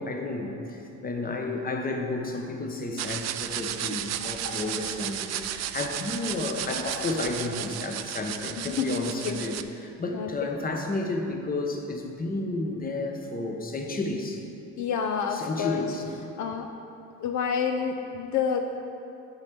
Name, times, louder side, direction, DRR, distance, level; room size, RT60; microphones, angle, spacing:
voice 1, 0.0-14.4 15.3-16.0, left 2 dB, 30° left, 3 dB, 0.9 m, -32 dB
sound 1, 3.0-9.6, right 11 dB, 60° right, 0.4 m, -34 dB
voice 2, 8.6-9.4 10.1-10.3 14.8-15.9 16.4-16.7 17.2-18.7, left 7 dB, 70° left, 5 dB, 0.5 m, -28 dB
6.8 x 4.5 x 6.7 m, 2.7 s
cardioid pair, 90°, 30 cm